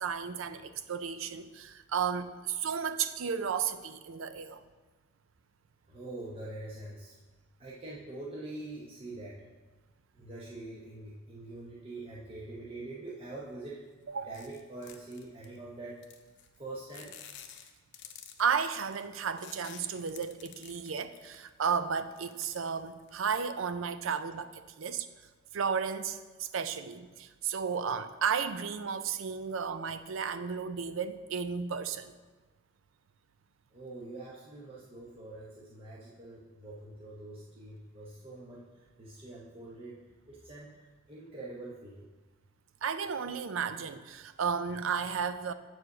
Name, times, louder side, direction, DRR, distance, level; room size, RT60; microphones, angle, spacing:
voice 1, 0.0-4.6 14.1-14.4 18.4-25.1 25.5-32.1 42.8-45.5, right 6 dB, 75° right, 12 dB, 0.5 m, -33 dB
voice 2, 5.9-7.2 7.6-9.5 10.1-13.8 14.2-16.0 16.6-17.1 33.7-40.0 40.3-42.1, right 2 dB, 30° right, -6 dB, 0.9 m, -44 dB
sound 1, 14.3-15.6 16.0-16.6 16.9-21.6 22.0-23.3, left 9 dB, 60° left, 0.7 m, -51 dB
7.8 x 4.9 x 5.9 m, 1.3 s
head